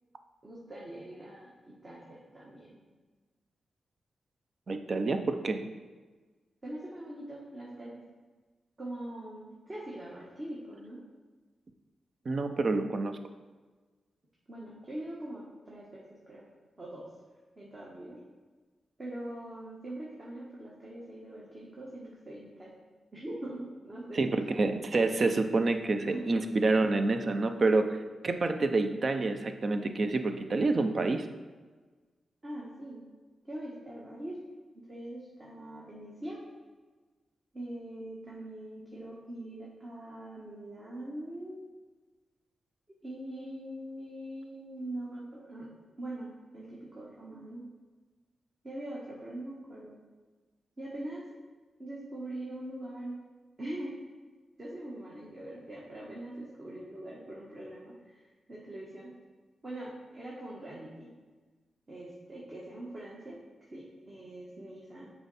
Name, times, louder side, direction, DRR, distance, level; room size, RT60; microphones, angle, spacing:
voice 1, 0.4-1.5 1.8-2.8 6.6-7.9 8.8-11.0 14.5-16.5 16.8-17.1 17.5-18.2 19.0-22.7 23.1-24.3 26.0-26.6 32.4-33.0 33.4-34.4 34.9-36.4 37.5-41.6 43.0-45.7 46.0-47.7 48.6-50.0 50.8-51.2 51.8-53.2 53.6-54.0 54.6-59.1 59.6-61.1 61.9-63.4 63.7-65.1, right 1 dB, 35° right, -5 dB, 1.4 m, -42 dB
voice 2, 4.7-5.6 12.3-13.2 24.1-28.0 28.2-31.3, right 3 dB, 50° right, 8 dB, 0.5 m, -28 dB
6.9 x 4.6 x 4.1 m, 1.3 s
cardioid pair, 85°, 0 cm